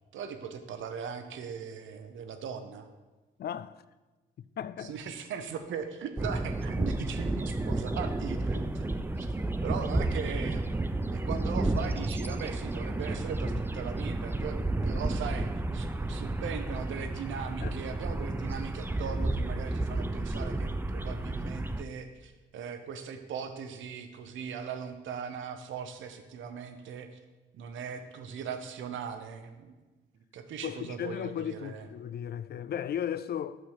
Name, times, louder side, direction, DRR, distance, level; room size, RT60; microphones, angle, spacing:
voice 1, 0.1-2.9 4.8-8.9 9.2-9.3 9.6-10.7 11.1-14.6 14.8-27.1 27.5-29.8 30.3-31.9, right 6 dB, 80° right, 0.8 m, -39 dB
voice 2, 3.4-3.8 4.6-4.9 17.6-18.0 30.6-33.6, left 9 dB, 55° left, 0.4 m, -35 dB
sound 1, 6.2-21.8, right 2 dB, 10° right, 0.4 m, -31 dB
6.3 x 6.1 x 4.9 m
cardioid pair, 65°, 20 cm